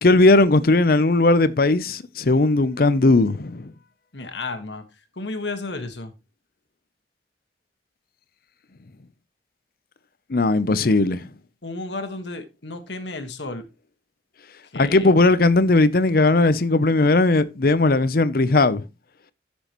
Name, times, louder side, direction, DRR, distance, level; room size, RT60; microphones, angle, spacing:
voice 1, 0.0-3.7 10.3-11.3 14.7-18.8, left 2 dB, 55° left, 0.6 m, -18 dB
voice 2, 4.1-4.8 5.1-6.1 11.6-13.7 14.7-15.1, left 3 dB, 85° left, 1.6 m, -32 dB
13.5 x 6.2 x 3.0 m
head